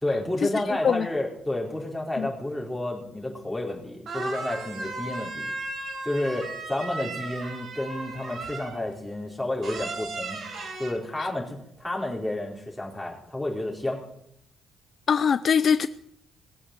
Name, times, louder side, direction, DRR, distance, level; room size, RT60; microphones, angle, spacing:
voice 1, 0.0-5.5 6.0-10.4 10.8-14.0, left 1 dB, 5° left, -2 dB, 4.6 m, -30 dB
sound 1, 3.7-3.8 4.1-8.9 9.6-10.9, right 3 dB, 55° right, 4.4 m, -35 dB
voice 2, 15.1-15.9, left 7 dB, 50° left, 13 dB, 0.5 m, -22 dB
19.0 x 8.5 x 7.8 m, 0.76 s
cardioid pair, 90°, 0 cm